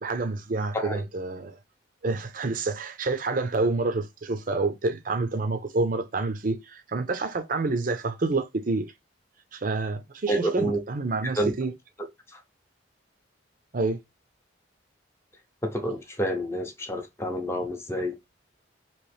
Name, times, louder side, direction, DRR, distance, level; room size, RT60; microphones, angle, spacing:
voice 1, 0.0-1.6 2.0-8.8 9.5-11.7 13.7-14.0, right 3 dB, 45° right, 0.5 m, -28 dB
voice 2, 10.3-10.8 11.4-11.5 15.6-18.2, right 1 dB, 15° left, 0.6 m, -28 dB
3.0 x 3.0 x 3.1 m
head